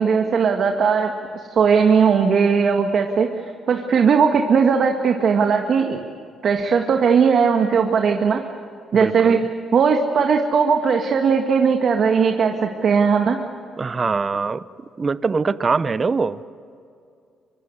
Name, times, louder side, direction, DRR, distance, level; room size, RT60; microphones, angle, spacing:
voice 1, 0.0-3.3 3.7-6.0 6.4-8.4 8.9-9.4 9.7-13.4, right 6 dB, 60° right, 3 dB, 1.9 m, -18 dB
voice 2, 8.9-9.4 13.8-14.7 15.0-16.4, right 4 dB, 35° right, 15 dB, 0.8 m, -23 dB
24.5 x 24.5 x 8.1 m, 2.4 s
cardioid pair, 90°, 0 cm